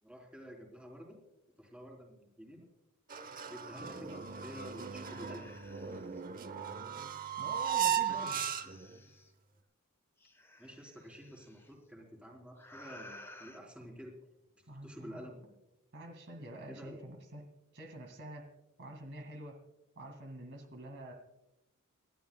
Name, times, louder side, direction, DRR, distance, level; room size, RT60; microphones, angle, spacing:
voice 1, 0.0-1.2 1.6-2.7 3.4-5.5 8.0-8.7 10.6-14.1 14.6-15.6 16.7-17.0, equal, 5° right, 0 dB, 3.6 m, -50 dB
sound 1, 3.1-9.0, right 9 dB, 40° right, 0.8 m, -36 dB
sound 2, 3.4-3.5 3.8-6.2 6.9-9.3 10.2-11.7 12.5-13.6, left 2 dB, 10° left, 1.8 m, -56 dB
voice 2, 7.4-8.4 14.7-15.3 15.9-17.5 17.7-18.5 18.8-19.6 20.0-21.1, right 1 dB, 55° right, 3 dB, 2.0 m, -47 dB
30.0 x 12.5 x 2.3 m, 0.94 s
head